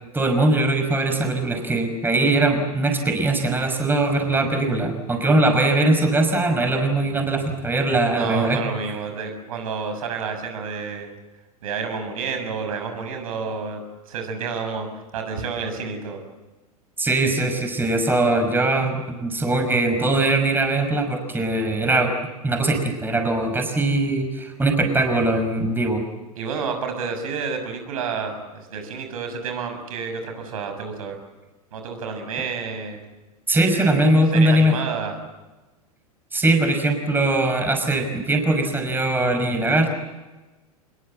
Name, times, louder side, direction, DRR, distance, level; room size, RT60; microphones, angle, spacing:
voice 1, 0.1-8.6 17.0-22.1 22.4-26.0 33.5-34.8 36.3-39.9, right 2 dB, 10° right, 5 dB, 5.6 m, -21 dB
voice 2, 8.1-11.1 11.6-14.9 15.1-16.2 26.4-31.2 31.7-33.0 33.7-34.0 34.3-35.1, right 5 dB, 65° right, 6 dB, 6.7 m, -30 dB
26.5 x 21.5 x 7.8 m, 1.2 s
figure-of-eight pair, 95°, 19 cm